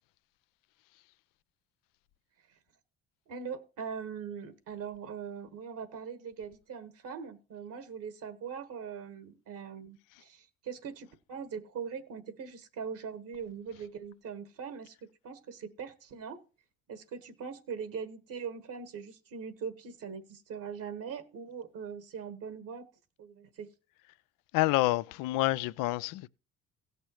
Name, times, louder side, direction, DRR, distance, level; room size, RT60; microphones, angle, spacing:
voice 1, 3.3-16.4 16.9-22.9 23.2-23.7, right 6 dB, 65° right, 1.5 m, -41 dB
voice 2, 24.5-26.3, left 18 dB, 65° left, 0.5 m, -28 dB
17.5 x 6.7 x 3.0 m
hypercardioid pair, 50°, 35 cm